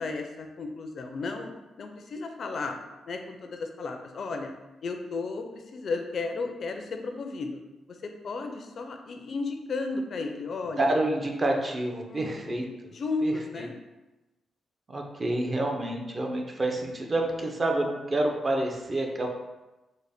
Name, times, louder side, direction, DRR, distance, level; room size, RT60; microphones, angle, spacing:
voice 1, 0.0-1.5 1.8-2.8 3.1-4.5 4.8-7.6 7.9-10.9 12.1-13.7, left 3 dB, 60° left, 5 dB, 0.4 m, -34 dB
voice 2, 10.8-12.7 13.2-13.7 14.9-19.3, right 1 dB, 35° right, 2 dB, 0.6 m, -28 dB
3.8 x 2.1 x 3.4 m, 1.1 s
cardioid pair, 85°, 0 cm